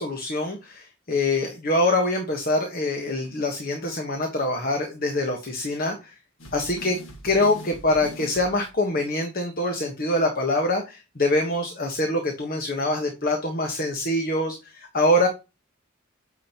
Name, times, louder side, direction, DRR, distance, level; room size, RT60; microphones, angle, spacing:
voice 1, 0.0-6.1 6.5-7.0 7.2-15.3, left 1 dB, 45° left, 4 dB, 1.3 m, -24 dB
sound 1, 6.4-8.8, right 1 dB, 70° left, 1.8 m, -41 dB
9.0 x 6.2 x 3.0 m, 0.28 s
head